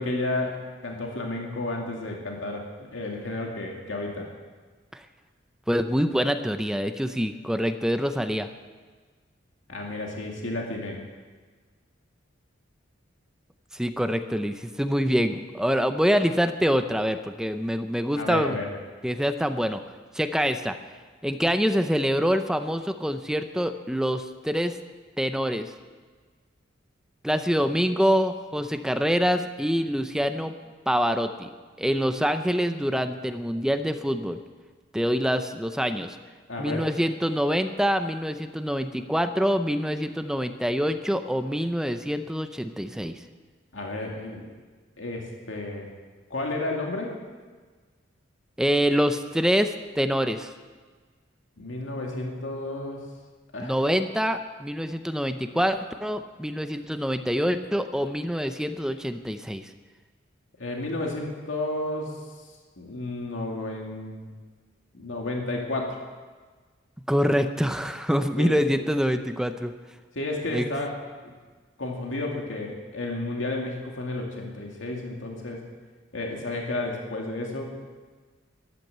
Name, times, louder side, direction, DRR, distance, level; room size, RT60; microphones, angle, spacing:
voice 1, 0.0-4.3 9.7-11.0 18.2-18.7 36.5-36.8 43.7-44.5 45.0-45.9 46.3-47.2 51.6-53.1 53.5-53.7 60.6-62.2 62.8-64.3 64.9-66.0 68.4-68.5 70.2-71.0 71.2-71.3 71.8-75.6 76.1-77.8, left 2 dB, 75° left, 0 dB, 2.3 m, -32 dB
voice 2, 5.7-8.5 13.7-18.6 19.0-19.8 20.1-20.8 21.2-24.8 25.2-25.7 27.2-30.5 30.9-31.5 31.8-34.4 34.9-36.2 36.6-43.2 48.6-50.5 53.6-59.6 67.1-69.7 70.5-70.7, equal, 5° right, 8 dB, 0.6 m, -25 dB
13.5 x 12.5 x 8.0 m, 1.4 s
head